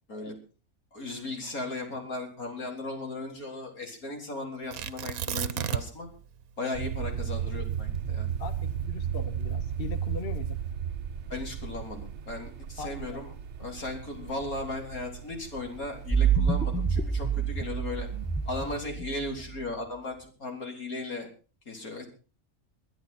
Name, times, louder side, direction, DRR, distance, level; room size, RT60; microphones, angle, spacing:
voice 1, 0.9-6.1 6.6-8.3 11.3-13.3 13.6-18.1 18.5-21.3 21.7-22.0, left 2 dB, 80° left, 2 dB, 4.6 m, -36 dB
Tearing, 4.7-6.1 6.4-6.5 7.0-9.4 10.1-10.6, right 9 dB, 80° right, 1.3 m, -33 dB
sound 1, 6.7-18.7, right 8 dB, 55° right, 1.1 m, -35 dB
voice 2, 8.4-10.6 12.8-13.3 13.6-13.8, left 5 dB, 40° left, 11 dB, 1.3 m, -40 dB
sound 2, 16.1-19.6, right 6 dB, 5° right, 0.9 m, -27 dB
22.5 x 10.5 x 4.3 m, 0.36 s
omnidirectional pair, 1.5 m